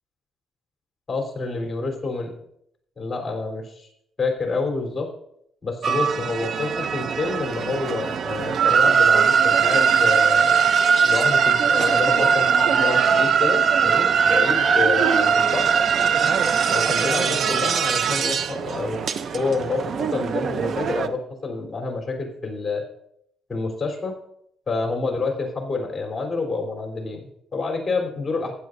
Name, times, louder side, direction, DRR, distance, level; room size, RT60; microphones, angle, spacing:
voice 1, 1.1-2.3 3.0-3.9 4.2-5.1 5.6-10.6 11.1-15.6 16.7-19.0 19.3-22.8 23.5-24.2 24.7-28.5, left 3 dB, 30° left, 1 dB, 3.8 m, -28 dB
sound 1, 5.8-21.1, right 6 dB, 60° right, 0.7 m, -20 dB
15.0 x 10.5 x 2.7 m, 0.72 s
cardioid pair, 90°, 0 cm